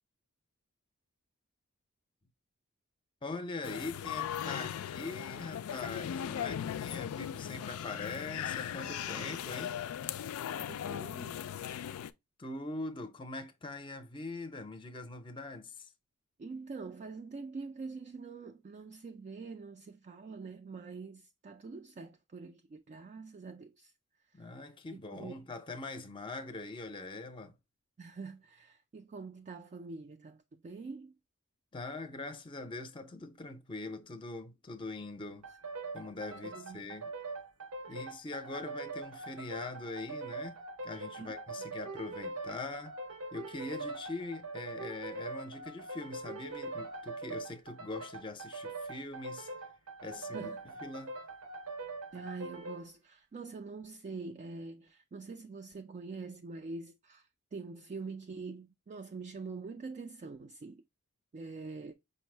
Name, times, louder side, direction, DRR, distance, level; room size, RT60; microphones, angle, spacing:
voice 1, 3.2-9.8 12.4-15.9 24.3-27.5 31.7-35.5 35.9-37.1 37.9-43.0 43.3-49.5 50.0-50.5 50.8-51.2, left 2 dB, 25° left, 0.6 m, -42 dB
sound 1, 3.6-12.1, left 9 dB, 75° left, 0.3 m, -38 dB
voice 2, 10.6-11.5 16.4-23.9 24.3-24.6 24.9-25.4 28.0-31.1 36.5-36.9 37.9-38.0 41.2-41.3 50.1-50.7 52.1-60.8 61.3-61.9, right 4 dB, 35° right, 0.3 m, -45 dB
sound 2, 35.4-52.9, right 2 dB, 80° right, 0.7 m, -43 dB
5.3 x 2.0 x 4.3 m
head